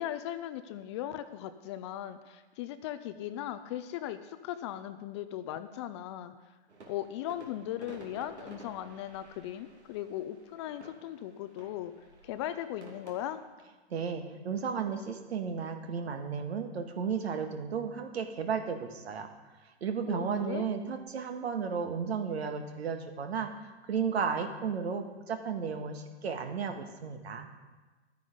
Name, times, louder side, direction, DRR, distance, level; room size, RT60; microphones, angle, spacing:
voice 1, 0.0-6.3 6.9-11.9 12.2-13.4 20.1-20.6, left 12 dB, 25° left, 11 dB, 0.4 m, -38 dB
sound 1, 6.7-13.3, right 3 dB, 85° right, 2.7 m, -53 dB
voice 2, 13.9-19.3 19.8-23.5 23.9-27.5, right 6 dB, 70° right, 6 dB, 1.7 m, -34 dB
12.5 x 9.4 x 5.1 m, 1.3 s
hypercardioid pair, 125°, 33 cm